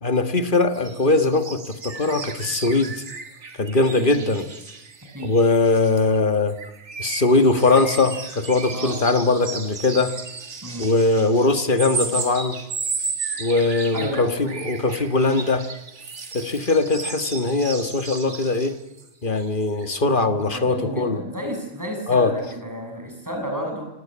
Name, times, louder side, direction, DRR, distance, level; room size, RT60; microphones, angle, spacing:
voice 1, 0.0-2.9 3.6-4.5 5.2-6.6 7.0-10.2 10.8-12.6 13.4-15.7 16.3-18.7 19.2-21.2 22.1-22.3, left 3 dB, 45° left, 9 dB, 1.8 m, -21 dB
sound 1, 0.7-6.2 6.5-19.1 19.3-19.5 19.8-19.9, right 4 dB, 70° right, 2.1 m, -34 dB
voice 2, 13.9-14.3 20.5-23.9, equal, 15° right, 2 dB, 7.2 m, -31 dB
27.0 x 18.5 x 8.7 m, 0.93 s
omnidirectional pair, 1.2 m